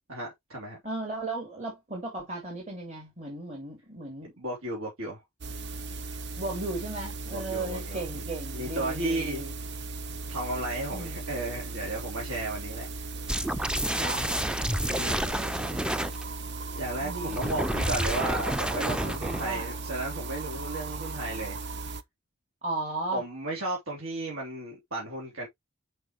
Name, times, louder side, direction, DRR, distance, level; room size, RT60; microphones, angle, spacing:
voice 1, 0.1-0.8 4.4-5.2 7.3-8.3 8.5-9.4 10.3-12.9 14.9-15.2 16.7-21.6 23.1-25.5, right 2 dB, 75° right, 3.4 m, -34 dB
voice 2, 0.8-4.3 6.4-9.5 10.9-11.2 13.9-14.3 15.1-15.8 17.0-17.6 19.4-19.7 22.6-23.2, right 2 dB, 35° right, 3.3 m, -36 dB
sound 1, 5.4-22.0, right 3 dB, 50° right, 0.7 m, -37 dB
sound 2, 13.3-16.2 17.3-19.5, equal, 5° right, 0.4 m, -29 dB
7.8 x 5.5 x 3.1 m
head